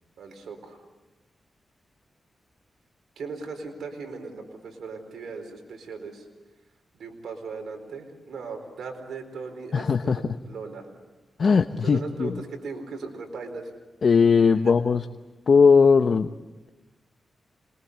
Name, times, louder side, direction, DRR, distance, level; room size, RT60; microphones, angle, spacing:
voice 1, 0.2-0.8 3.2-6.3 6.9-10.9 11.8-13.7 14.5-14.7, right 4 dB, 85° right, 4 dB, 4.4 m, -38 dB
voice 2, 9.7-10.2 11.4-12.3 14.0-15.0 15.5-16.3, left 5 dB, 65° left, 9 dB, 0.9 m, -18 dB
27.0 x 22.0 x 8.2 m, 1.1 s
cardioid pair, 65°, 0 cm